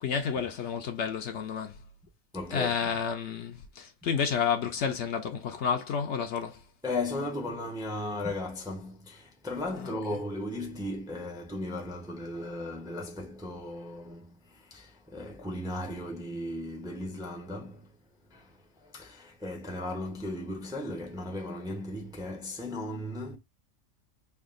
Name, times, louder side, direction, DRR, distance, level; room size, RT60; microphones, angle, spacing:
voice 1, 0.0-1.8 2.5-6.6, left 7 dB, 65° left, 0.9 m, -30 dB
voice 2, 2.3-3.0 6.8-17.9 18.3-23.4, left 1 dB, 5° right, 0.5 m, -36 dB
3.5 x 2.3 x 3.6 m
omnidirectional pair, 1.4 m